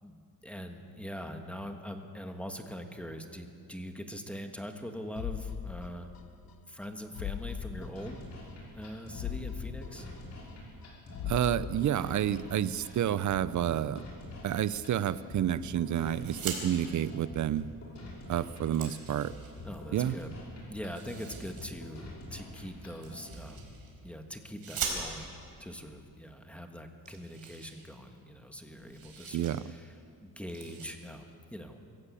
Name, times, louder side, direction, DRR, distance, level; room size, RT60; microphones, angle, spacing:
voice 1, 0.0-6.1 6.7-8.2 8.7-10.1 19.6-20.3 20.7-23.7 24.0-31.9, equal, 5° left, 4 dB, 1.6 m, -43 dB
sound 1, 5.2-6.5 6.8-6.9 7.2-8.5 8.8-8.9 9.2-10.9 11.2-12.5 12.8-12.9, left 9 dB, 70° left, 1.1 m, -40 dB
sound 2, 7.6-23.6, left 1 dB, 45° left, 6.0 m, -46 dB
voice 2, 11.3-14.0 14.4-17.7 18.3-19.3 19.9-20.1 29.3-29.6, right 10 dB, 50° right, 16 dB, 0.7 m, -29 dB
sound 3, 16.2-16.6 17.9-18.0 18.4-19.8 20.8-21.7 23.0-23.9 24.6-25.4 26.3-26.4 26.6-26.7 27.0-28.4 28.6-29.5 29.9-30.1 30.4-30.9, right 6 dB, 70° right, 4.7 m, -41 dB
24.5 x 15.5 x 8.5 m, 2.5 s
cardioid pair, 150°, 37 cm